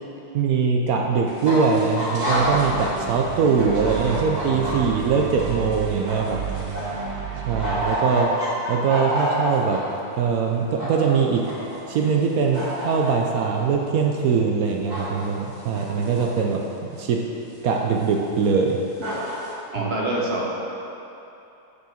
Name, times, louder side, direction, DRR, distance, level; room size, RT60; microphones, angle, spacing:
voice 1, 0.3-6.4 7.5-8.3 8.7-9.8 10.2-11.4 11.9-16.6 17.0-17.2 17.6-18.8 19.8-19.9, right 5 dB, 70° right, 1 dB, 0.9 m, -22 dB
sound 1, 1.3-3.0 3.3-7.0 7.3-9.8 10.5-11.1 11.4-12.2 12.5-13.1 14.9-15.3 15.5-16.5 17.0-17.1 18.0-18.1 18.7-18.8 19.0-19.5, equal, 25° right, 2.1 m, -28 dB
sound 2, 2.2-7.9, right 10 dB, 90° right, 1.4 m, -32 dB
voice 2, 19.7-20.6, right 1 dB, 40° right, -3 dB, 1.2 m, -25 dB
6.4 x 5.5 x 7.1 m, 2.9 s
omnidirectional pair, 2.0 m